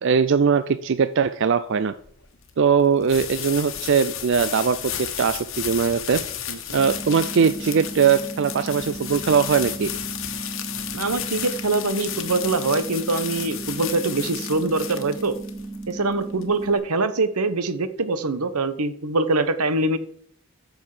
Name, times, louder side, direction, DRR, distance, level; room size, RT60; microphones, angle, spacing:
voice 1, 0.0-2.0 2.6-6.2 6.7-9.9, right 6 dB, 55° right, 13 dB, 0.4 m, -20 dB
sound 1, 1.9-16.8, left 10 dB, 60° left, 1.3 m, -33 dB
sound 2, 6.8-16.8, right 2 dB, ahead, 2.0 m, -36 dB
voice 2, 10.9-15.4 15.9-20.0, right 3 dB, 90° right, 12 dB, 1.0 m, -24 dB
14.5 x 6.4 x 4.9 m, 0.63 s
head